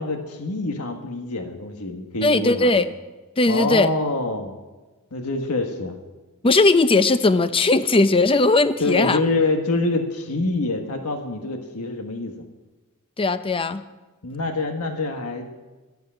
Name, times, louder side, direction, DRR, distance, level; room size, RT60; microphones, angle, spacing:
voice 1, 0.0-2.9 3.5-4.6 5.1-6.0 8.8-12.4 14.2-15.5, left 2 dB, 90° left, 4 dB, 1.5 m, -26 dB
voice 2, 2.2-2.8 3.4-3.9 6.4-9.2 13.2-13.8, left 3 dB, 25° left, 12 dB, 0.6 m, -18 dB
12.5 x 8.2 x 8.8 m, 1.2 s
head